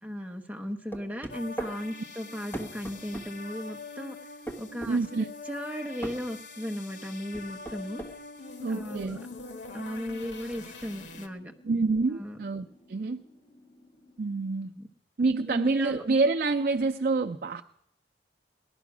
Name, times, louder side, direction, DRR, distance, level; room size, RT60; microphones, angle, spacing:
voice 1, 0.0-4.2 4.6-5.0 5.5-8.0 8.7-9.3 9.7-11.5 12.2-12.4 14.8-14.9 15.5-16.0, equal, 10° right, 1.0 m, -36 dB
sound 1, 0.9-1.8 2.5-3.3 4.5-5.0 6.0-6.2 7.3-8.1, right 2 dB, 10° left, 1.3 m, -37 dB
sound 2, 1.3-11.3, left 3 dB, 85° left, 1.4 m, -44 dB
voice 2, 4.9-5.3 8.6-9.2 11.6-13.2 14.2-14.7 15.2-17.6, right 3 dB, 55° right, 0.5 m, -27 dB
sound 3, 8.8-14.4, left 1 dB, 40° left, 3.6 m, -60 dB
18.0 x 12.0 x 6.0 m
head